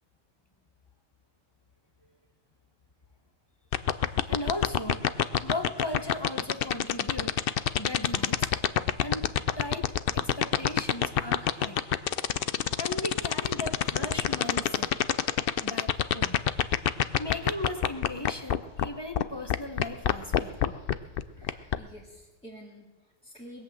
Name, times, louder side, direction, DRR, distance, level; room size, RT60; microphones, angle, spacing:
sound 1, 3.7-18.9 19.2-19.3 19.5-21.8, left 10 dB, 65° left, 0.5 m, -24 dB
voice 1, 4.2-5.0 5.4-7.4 7.8-11.8 12.8-14.9 15.6-16.4 17.0-20.8 21.4-21.5, left 1 dB, 20° left, 7 dB, 0.7 m, -37 dB
voice 2, 21.3-23.6, equal, 5° left, -4 dB, 1.7 m, -49 dB
20.5 x 8.2 x 7.7 m, 1.2 s
omnidirectional pair, 1.6 m